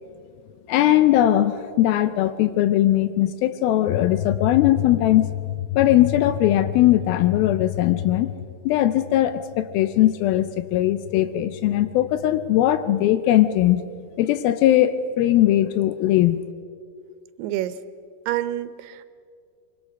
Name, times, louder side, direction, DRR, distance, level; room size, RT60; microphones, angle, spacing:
voice 1, 0.7-8.3 8.7-13.8 14.2-16.4, left 13 dB, 80° left, 12 dB, 2.3 m, -19 dB
voice 2, 17.4-17.8 18.3-19.0, right 13 dB, 80° right, 12 dB, 2.8 m, -27 dB
24.0 x 23.5 x 5.3 m, 2.3 s
omnidirectional pair, 4.6 m